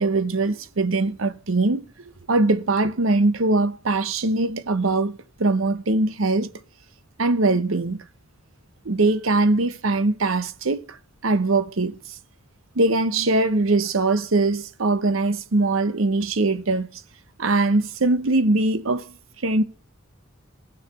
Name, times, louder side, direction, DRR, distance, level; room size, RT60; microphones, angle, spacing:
voice 1, 0.0-1.9 2.3-6.5 7.2-8.0 8.8-11.0 11.2-12.0 12.7-17.0 17.4-19.1 19.4-19.6, right 2 dB, 75° right, 0.9 m, -21 dB
17.0 x 6.5 x 5.7 m
head